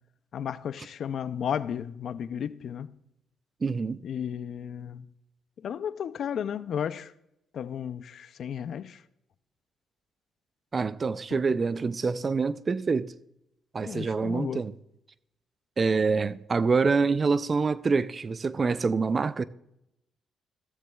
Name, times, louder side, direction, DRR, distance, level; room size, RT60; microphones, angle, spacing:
voice 1, 0.3-2.9 4.0-5.1 5.6-7.1 7.5-9.0 11.3-11.4 13.8-14.7, left 8 dB, 65° left, 0.4 m, -33 dB
voice 2, 3.6-4.0 10.7-13.1 13.7-14.7 15.8-19.4, right 4 dB, 35° right, 0.4 m, -26 dB
15.0 x 13.5 x 2.3 m
cardioid pair, 90°, 0 cm